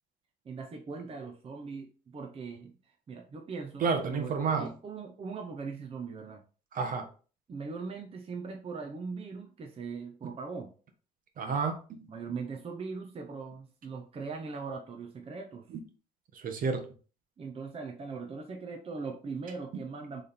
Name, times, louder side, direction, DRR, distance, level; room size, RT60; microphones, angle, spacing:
voice 1, 0.4-6.4 7.5-10.7 12.1-15.7 17.4-20.2, right 4 dB, 35° right, 3 dB, 1.0 m, -40 dB
voice 2, 3.8-4.7 6.7-7.1 11.4-12.1 16.3-16.8, right 5 dB, 55° right, 6 dB, 1.3 m, -30 dB
6.3 x 3.5 x 4.3 m, 0.37 s
cardioid pair, 110°, 17 cm